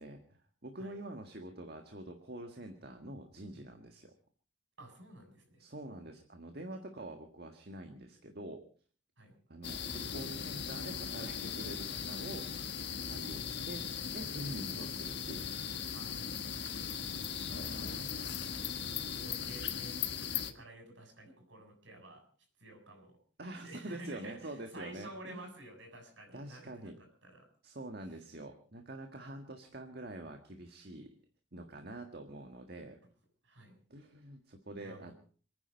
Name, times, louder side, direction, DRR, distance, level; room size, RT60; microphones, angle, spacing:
voice 1, 0.0-4.1 5.6-8.6 9.5-13.8 14.1-15.7 17.4-18.3 23.4-25.5 26.3-27.0 27.6-31.1 31.5-33.0 33.9-35.1, right 1 dB, 50° right, 5 dB, 1.7 m, -46 dB
voice 2, 4.8-5.6 9.2-9.4 14.7-14.8 15.9-16.2 16.9-17.1 17.6-17.9 18.7-22.2 22.6-23.2 23.6-26.9 27.2-27.5 29.2-29.3 33.4-33.8 34.8-35.1, right 1 dB, 70° right, 4 dB, 7.1 m, -51 dB
sound 1, 9.6-20.5, left 7 dB, 60° left, 1.6 m, -38 dB
27.5 x 10.0 x 5.2 m, 0.43 s
head